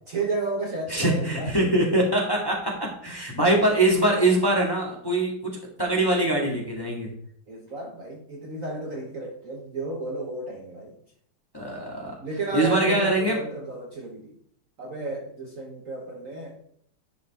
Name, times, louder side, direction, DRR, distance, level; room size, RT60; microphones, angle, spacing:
voice 1, 0.1-1.7 7.5-10.9 12.2-14.4 14.8-16.6, right 2 dB, 50° right, 0 dB, 1.2 m, -32 dB
voice 2, 0.9-7.1 11.5-12.1 12.5-13.4, right 1 dB, 10° left, -2 dB, 1.5 m, -23 dB
10.5 x 4.6 x 4.2 m, 0.67 s
omnidirectional pair, 2.3 m